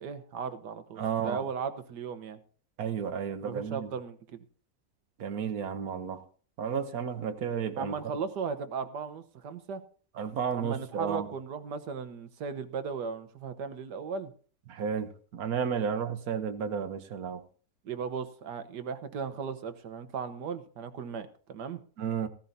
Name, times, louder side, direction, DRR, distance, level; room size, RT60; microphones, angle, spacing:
voice 1, 0.0-2.4 3.4-4.4 7.8-9.8 10.5-14.3 17.8-21.8, right 6 dB, 80° right, 10 dB, 1.6 m, -36 dB
voice 2, 1.0-1.4 2.8-3.9 5.2-6.2 6.6-7.9 10.2-11.3 14.7-17.4 22.0-22.3, right 7 dB, 60° right, 9 dB, 1.4 m, -32 dB
15.5 x 14.5 x 2.7 m, 0.43 s
omnidirectional pair, 1.8 m